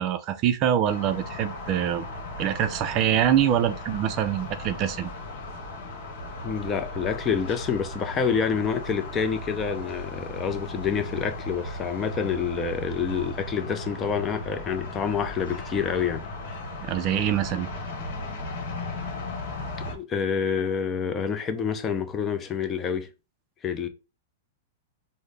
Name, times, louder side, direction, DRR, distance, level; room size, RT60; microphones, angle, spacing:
voice 1, 0.0-2.1 2.4-5.1 16.8-17.7, right 10 dB, 40° right, 0.4 m, -24 dB
sound 1, 0.8-19.9, left 2 dB, 60° left, 1.1 m, -36 dB
voice 2, 6.4-16.2 19.9-23.1 23.6-23.9, left 6 dB, 25° left, 0.5 m, -27 dB
3.8 x 2.0 x 3.2 m
hypercardioid pair, 135°, 0 cm